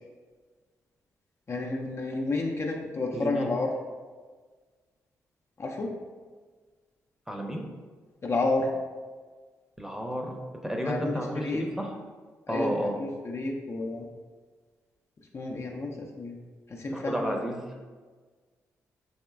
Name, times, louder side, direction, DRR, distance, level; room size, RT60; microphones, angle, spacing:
voice 1, 1.5-3.7 5.6-5.9 8.2-8.7 10.8-11.6 12.5-14.0 15.3-16.3 16.7-17.3, left 2 dB, 40° left, 0 dB, 0.5 m, -30 dB
voice 2, 3.1-3.5 7.3-7.6 9.8-11.9 12.5-13.0 16.9-17.6, equal, 5° right, 1 dB, 0.7 m, -32 dB
4.1 x 2.9 x 2.3 m, 1.4 s
hypercardioid pair, 40°, 7 cm